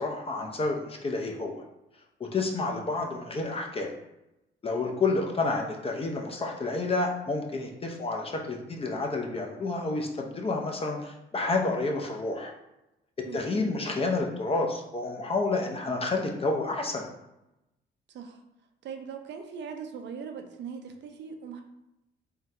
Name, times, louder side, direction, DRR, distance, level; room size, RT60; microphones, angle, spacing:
voice 1, 0.0-1.6 2.2-3.9 4.6-12.5 13.3-17.0, left 3 dB, 30° left, 2 dB, 0.5 m, -29 dB
voice 2, 13.2-13.8 18.1-18.4 18.8-21.6, right 6 dB, 65° right, 5 dB, 0.5 m, -40 dB
3.7 x 2.2 x 2.7 m, 0.91 s
cardioid pair, 90°, 20 cm